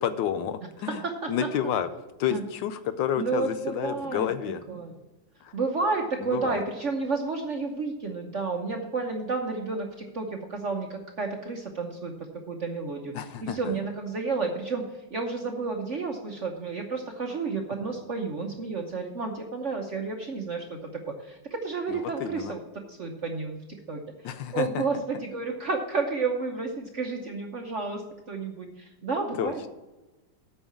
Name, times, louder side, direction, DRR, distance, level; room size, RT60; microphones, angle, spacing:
voice 1, 0.0-1.0 1.3-1.9 2.2-4.6 5.4-5.5 6.3-6.6 13.1-13.6 21.9-22.5 24.2-24.8 29.4-29.7, left 9 dB, 75° left, 11 dB, 1.2 m, -30 dB
voice 2, 0.9-1.3 2.3-2.4 3.2-4.3 4.7-4.9 5.5-13.1 13.4-14.8 15.1-22.6 22.9-23.6 23.9-29.7, right 4 dB, 50° right, 2 dB, 0.9 m, -31 dB
8.7 x 5.6 x 7.2 m, 1.1 s
omnidirectional pair, 2.3 m